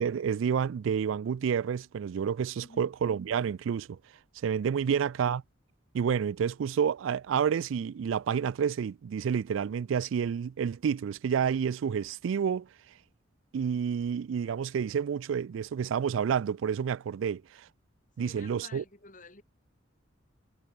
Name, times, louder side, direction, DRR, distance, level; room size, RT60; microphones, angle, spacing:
voice 1, 0.0-4.0 4.4-5.4 5.9-12.7 13.5-17.7 18.2-18.8, right 7 dB, 90° right, 0.3 m, -29 dB
voice 2, 18.2-19.4, left 2 dB, 40° left, 6.1 m, -51 dB
head